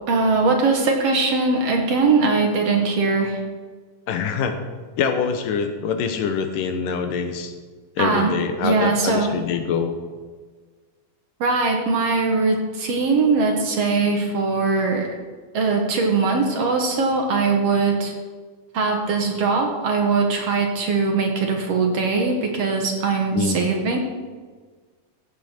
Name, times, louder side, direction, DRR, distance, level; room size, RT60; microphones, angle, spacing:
voice 1, 0.1-3.4 8.0-8.3 8.6-9.3 11.4-15.2 15.5-18.1 18.7-24.0, right 4 dB, 60° right, 2 dB, 2.1 m, -21 dB
voice 2, 4.1-4.6 5.0-7.5 8.0-9.9 23.3-23.7, left 6 dB, 90° left, 7 dB, 2.7 m, -24 dB
15.0 x 8.4 x 4.4 m, 1.5 s
omnidirectional pair, 3.7 m